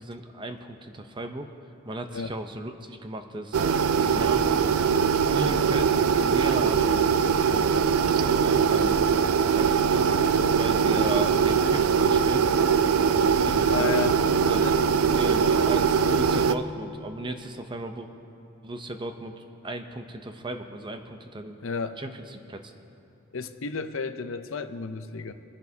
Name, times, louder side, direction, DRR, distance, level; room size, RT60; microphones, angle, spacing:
voice 1, 0.0-1.5 1.8-3.6 4.1-4.5 5.3-7.2 7.4-7.7 8.2-9.0 9.5-10.3 10.6-12.5 13.4-14.6 15.1-18.1 18.6-19.3 19.6-21.6 22.0-22.7, right 1 dB, 20° right, 6 dB, 0.7 m, -36 dB
sound 1, 3.5-16.5, right 6 dB, 80° right, 0.4 m, -22 dB
voice 2, 13.6-14.2 14.6-14.8 21.6-22.0 23.3-25.3, left 5 dB, 65° left, 9 dB, 0.6 m, -32 dB
25.0 x 10.5 x 2.8 m, 2.7 s
head